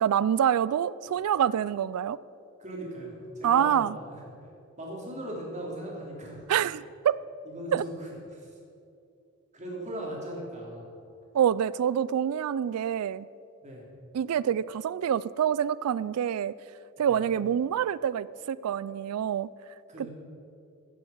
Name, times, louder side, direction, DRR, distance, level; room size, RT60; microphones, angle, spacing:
voice 1, 0.0-2.2 3.4-4.0 6.5-7.2 7.7-7.8 11.3-13.3 14.1-16.5 17.0-19.5 20.0-20.1, right 9 dB, 90° right, 19 dB, 0.3 m, -26 dB
voice 2, 2.6-4.2 4.8-6.5 7.4-8.5 9.5-10.8 13.6-13.8 17.0-17.2 19.9-20.1, right 1 dB, 35° right, -3 dB, 3.3 m, -39 dB
15.5 x 7.6 x 7.2 m, 2.6 s
head